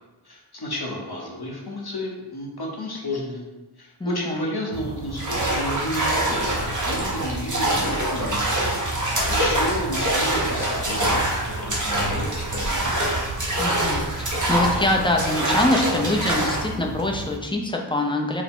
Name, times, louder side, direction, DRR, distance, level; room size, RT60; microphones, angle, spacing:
voice 1, 0.2-3.4 3.8-8.6 8.9-11.3 11.6-12.8, left 1 dB, 60° left, -1 dB, 1.0 m, -32 dB
voice 2, 4.0-4.5 13.6-18.4, left 1 dB, 10° left, 1 dB, 0.5 m, -24 dB
sound 1, 4.7-17.4, right 3 dB, 70° right, 0.6 m, -35 dB
sound 2, 5.2-16.7, right 1 dB, 45° right, 1.0 m, -25 dB
4.7 x 2.1 x 3.6 m, 1.1 s
wide cardioid pair, 40°, 43 cm